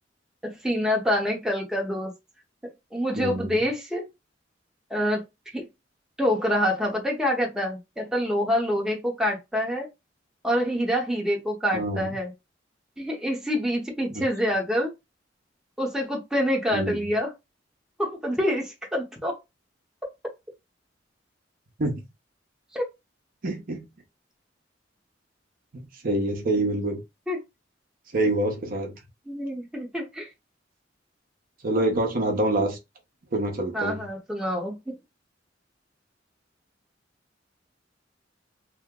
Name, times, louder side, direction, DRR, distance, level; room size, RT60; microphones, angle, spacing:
voice 1, 0.4-2.1 2.9-4.0 4.9-5.2 5.5-5.6 6.2-9.9 10.4-12.3 13.0-14.9 15.8-17.3 18.0-19.4 22.7-22.9 27.3-27.4 29.3-30.3 33.7-35.0, equal, 5° right, 0.8 m, -26 dB
voice 2, 3.2-3.6 11.7-12.1 16.7-17.0 21.8-22.0 23.4-23.9 26.0-27.0 28.1-28.9 31.6-32.8 33.3-34.0, right 1 dB, 50° right, 0.7 m, -26 dB
2.9 x 2.0 x 3.5 m
head